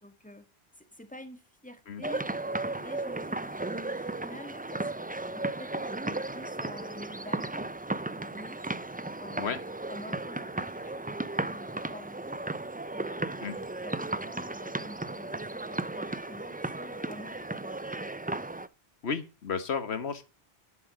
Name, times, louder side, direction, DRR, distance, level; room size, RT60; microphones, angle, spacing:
voice 1, 0.0-0.4 0.7-2.3 2.8-3.6 3.9-8.6 9.2-12.4 12.9-18.0, left 1 dB, 10° left, 1.7 m, -48 dB
sound 1, 2.0-18.7, right 2 dB, 15° right, 0.3 m, -35 dB
voice 2, 19.0-20.2, left 6 dB, 90° left, 1.5 m, -32 dB
11.0 x 7.5 x 4.9 m
omnidirectional pair, 1.1 m